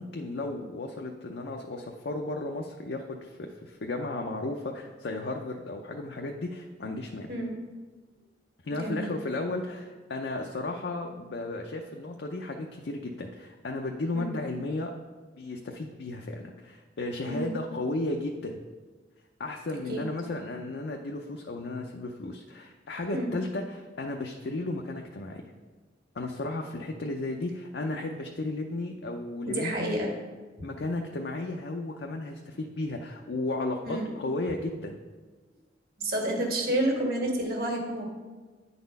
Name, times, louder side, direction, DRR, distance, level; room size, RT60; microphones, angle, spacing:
voice 1, 0.0-7.3 8.6-14.9 15.4-18.6 19.4-25.4 26.1-30.0 30.6-35.0, left 2 dB, 70° left, 1 dB, 0.6 m, -34 dB
voice 2, 7.3-7.6 8.8-9.1 14.1-14.3 17.3-17.5 19.9-20.0 23.1-23.3 29.5-30.1 33.8-34.1 36.0-38.1, right 1 dB, 60° right, 0 dB, 1.6 m, -29 dB
9.4 x 4.1 x 5.3 m, 1.4 s
head